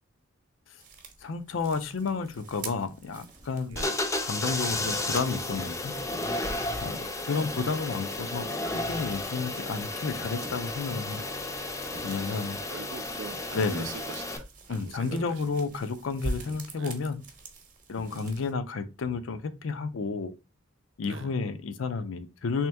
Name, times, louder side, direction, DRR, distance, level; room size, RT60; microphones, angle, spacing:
sound 1, 0.8-18.5, right 2 dB, 40° right, 0.9 m, -46 dB
voice 1, 1.2-3.8 4.2-6.0 6.8-11.3 12.0-12.6 13.5-13.9 14.7-17.2 17.9-20.3 21.0-22.7, left 4 dB, 75° left, 0.5 m, -31 dB
sound 2, 2.0-2.4 3.2-3.5 4.8-5.1 5.9-6.4 10.2-10.6 11.9-12.3 13.7-14.1 15.1-15.5 16.5-17.0 17.9-18.4, right 1 dB, 20° right, 0.8 m, -49 dB
sound 3, 3.7-14.4, left 2 dB, 15° left, 0.5 m, -33 dB
voice 2, 6.6-7.5 12.2-15.7 16.8-17.0 18.0-18.4 21.0-21.4, right 6 dB, 65° right, 0.4 m, -44 dB
3.4 x 2.9 x 3.3 m
head